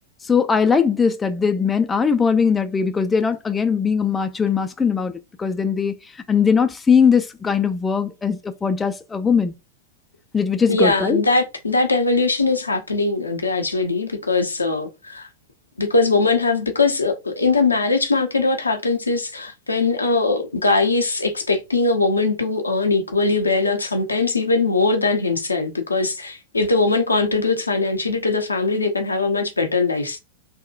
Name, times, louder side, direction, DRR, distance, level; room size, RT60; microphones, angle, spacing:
voice 1, 0.3-5.1 5.4-5.9 6.3-9.5 10.3-11.2, left 6 dB, 15° left, 0.3 m, -20 dB
voice 2, 10.7-15.3 15.8-30.2, left 3 dB, 80° left, 0.6 m, -21 dB
3.6 x 2.1 x 2.4 m
figure-of-eight pair, 90°, 0 cm